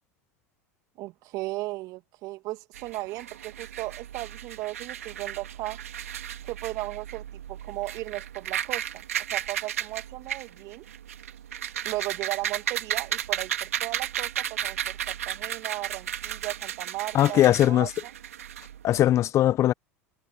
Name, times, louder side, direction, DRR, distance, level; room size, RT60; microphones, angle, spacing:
voice 1, 1.0-5.8 6.4-9.0 9.3-10.9 11.8-18.1, right 19 dB, 50° right, 2.4 m, -36 dB
sound 1, 2.7-19.0, right 10 dB, 75° right, 3.1 m, -34 dB
voice 2, 17.1-17.9 18.8-19.7, left 13 dB, 40° left, 1.0 m, -20 dB
figure-of-eight pair, 80°, 8 cm